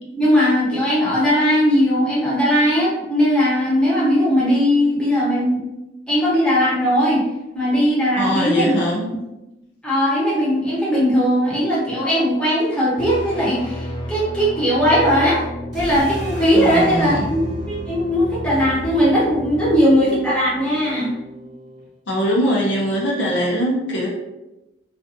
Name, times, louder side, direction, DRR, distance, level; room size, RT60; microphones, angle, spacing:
voice 1, 0.1-5.6 6.1-7.2 7.5-8.7 9.8-15.4 15.7-21.1, equal, 5° left, -8 dB, 0.8 m, -18 dB
voice 2, 8.2-9.1 16.5-17.2 22.1-24.1, equal, 70° left, -3 dB, 0.6 m, -21 dB
sound 1, 13.0-19.8, equal, 25° left, 0.3 m, -32 dB
sound 2, 15.7-21.9, right 2 dB, 25° right, 1.0 m, -37 dB
2.5 x 2.4 x 2.5 m, 0.97 s
head